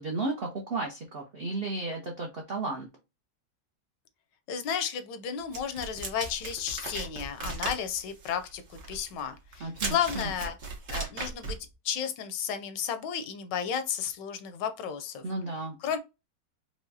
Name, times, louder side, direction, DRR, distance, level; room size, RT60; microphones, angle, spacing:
voice 1, 0.0-2.9 9.6-10.3 15.2-15.8, right 3 dB, 70° right, 0.5 m, -33 dB
voice 2, 4.5-10.6 10.9-11.6 11.8-15.2 15.8-16.0, left 8 dB, 80° left, 1.2 m, -33 dB
sound 1, 5.5-11.6, right 3 dB, 50° right, 1.2 m, -37 dB
4.8 x 2.2 x 2.7 m
omnidirectional pair, 2.0 m